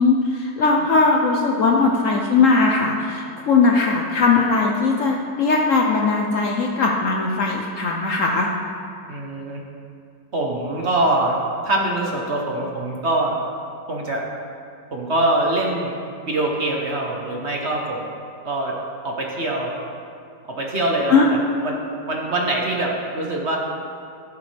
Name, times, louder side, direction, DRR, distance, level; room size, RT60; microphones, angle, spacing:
voice 1, 0.0-8.5 21.1-21.3, left 4 dB, 60° left, 1 dB, 0.9 m, -19 dB
voice 2, 9.1-9.6 10.3-11.4 11.6-13.4 13.9-14.2 14.9-15.9 16.3-18.0 18.4-18.7 19.0-19.7 20.5-21.8 22.1-23.6, right 1 dB, 45° right, -1 dB, 1.1 m, -23 dB
16.0 x 7.2 x 3.3 m, 2.4 s
omnidirectional pair, 1.9 m